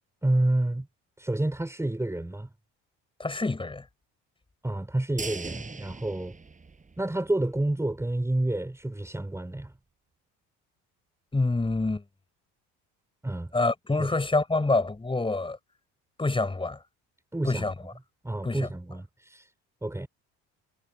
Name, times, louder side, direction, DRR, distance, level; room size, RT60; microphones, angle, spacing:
voice 1, 0.2-0.9 1.2-2.5 4.6-6.4 7.0-9.7 13.2-13.5 14.0-14.1 17.3-17.7 18.2-19.4 19.8-20.1, right 1 dB, 10° right, 4.9 m, -29 dB
voice 2, 3.2-3.9 11.3-12.0 13.5-15.6 16.2-16.8 17.4-17.7 18.4-18.7, left 3 dB, 15° left, 5.8 m, -26 dB
sound 1, 5.2-7.3 7.7-7.8 8.1-8.2, right 4 dB, 25° right, 6.5 m, -40 dB
supercardioid pair, 95°, 32 cm